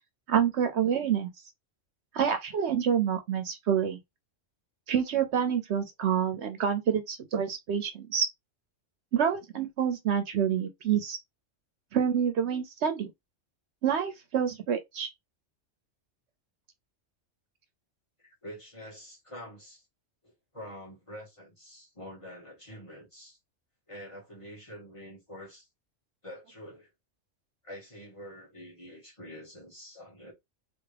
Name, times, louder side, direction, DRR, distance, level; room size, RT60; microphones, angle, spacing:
voice 1, 0.3-1.3 2.1-4.0 4.9-8.3 9.1-11.2 11.9-13.1 13.8-15.1, right 8 dB, 70° right, 0.8 m, -27 dB
voice 2, 18.2-19.8 20.2-23.4 23.9-25.7 26.2-26.9 27.6-30.3, equal, 25° left, 1.6 m, -46 dB
3.4 x 2.5 x 3.3 m
omnidirectional pair, 1.3 m